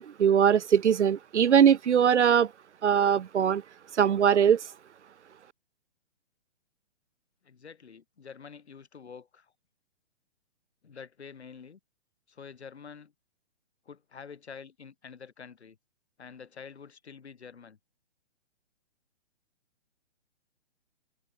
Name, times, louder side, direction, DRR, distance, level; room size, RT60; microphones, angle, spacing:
voice 1, 0.0-2.5 2.8-3.6 4.0-4.6, right 8 dB, 75° right, 0.6 m, -21 dB
voice 2, 7.4-9.5 10.8-11.8 12.3-13.1 13.9-15.8 16.2-17.8, left 6 dB, 65° left, 5.2 m, -47 dB
figure-of-eight pair, 130°, 35 cm